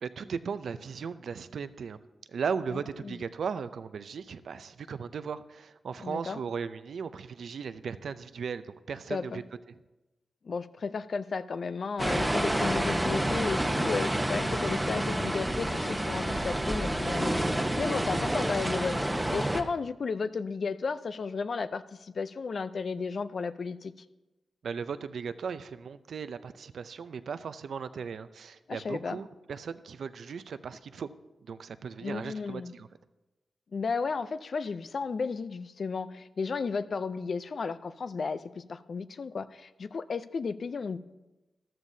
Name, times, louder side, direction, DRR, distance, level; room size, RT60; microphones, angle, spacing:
voice 1, 0.0-2.0 2.3-9.4 24.6-31.1 31.5-32.9, right 6 dB, 75° right, 12 dB, 0.5 m, -37 dB
voice 2, 2.7-3.2 6.0-6.4 9.1-9.4 10.4-19.0 19.3-23.9 28.7-29.2 32.0-32.7 33.7-41.0, left 5 dB, 55° left, 13 dB, 0.5 m, -34 dB
sound 1, 12.0-19.6, right 1 dB, 10° right, 0.9 m, -29 dB
13.5 x 13.0 x 2.7 m, 1.0 s
cardioid pair, 85°, 0 cm